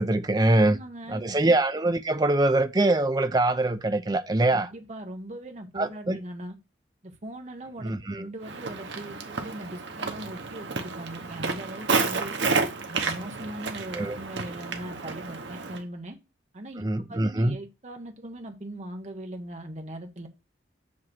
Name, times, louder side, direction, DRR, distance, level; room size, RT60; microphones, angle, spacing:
voice 1, 0.0-0.8 1.1-4.7 5.8-6.2 7.8-8.3 13.9-14.2 16.8-17.6, right 2 dB, 20° right, 0.4 m, -23 dB
voice 2, 0.6-1.5 4.5-6.5 7.0-12.4 12.9-16.2 16.5-20.3, right 1 dB, 35° right, 1.0 m, -40 dB
Walk footsteps, 8.4-15.8, right 4 dB, 75° right, 1.1 m, -31 dB
7.5 x 3.1 x 6.0 m
head